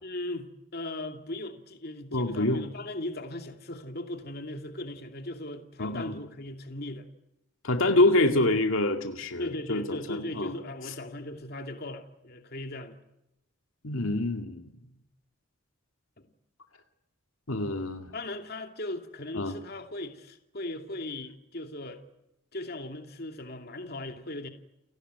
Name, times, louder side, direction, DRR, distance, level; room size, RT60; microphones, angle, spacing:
voice 1, 0.0-7.1 9.4-13.0 16.2-16.3 18.1-22.0 22.5-24.5, left 1 dB, 50° left, 2.6 m, -38 dB
voice 2, 2.1-2.6 5.8-6.2 7.6-10.5 13.8-14.7 17.5-18.0 19.3-19.5, left 2 dB, 75° left, 2.3 m, -26 dB
30.0 x 18.0 x 9.4 m
head